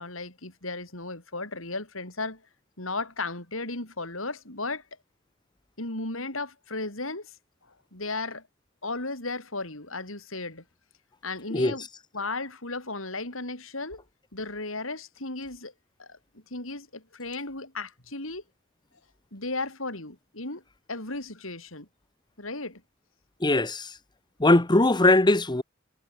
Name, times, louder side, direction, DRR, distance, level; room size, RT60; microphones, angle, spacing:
voice 1, 0.0-2.4 2.8-4.8 5.8-7.3 7.9-8.4 8.8-10.6 11.2-11.9 12.1-14.0 14.3-15.7 16.0-18.4 19.3-20.6 20.9-21.9 22.4-22.8, left 3 dB, 70° left, 6.8 m, -35 dB
voice 2, 23.4-23.9 24.4-25.6, left 2 dB, 20° left, 1.1 m, -20 dB
head